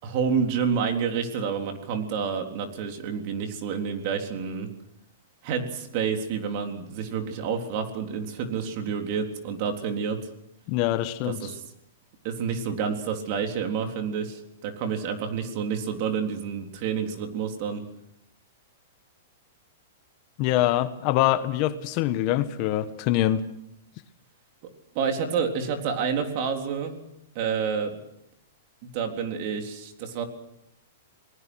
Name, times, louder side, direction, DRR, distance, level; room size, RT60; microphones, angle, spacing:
voice 1, 0.0-4.7 5.4-10.2 11.2-11.6 12.2-17.8 25.0-27.0 27.4-27.9 28.8-30.2, right 6 dB, 45° right, 4 dB, 3.7 m, -29 dB
voice 2, 10.7-11.4 20.4-23.4, left 13 dB, 40° left, 11 dB, 1.3 m, -24 dB
28.5 x 19.5 x 6.3 m, 0.79 s
hypercardioid pair, 150°, 0 cm